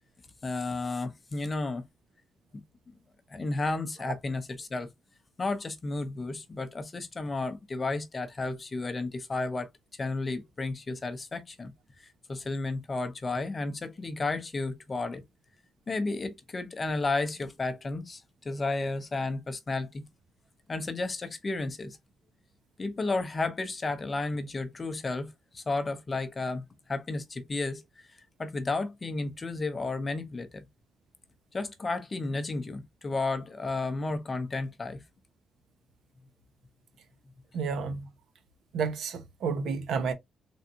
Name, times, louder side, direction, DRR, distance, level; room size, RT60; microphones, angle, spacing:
voice 1, 0.4-1.8 3.3-4.9 5.4-11.7 12.3-15.2 15.9-20.0 20.7-22.0 22.8-30.7 31.5-35.0, left 3 dB, 25° left, 0.6 m, -32 dB
voice 2, 37.5-38.1 38.7-40.1, right 5 dB, 75° right, 0.9 m, -31 dB
4.0 x 3.5 x 2.7 m
wide cardioid pair, 175°, 0 cm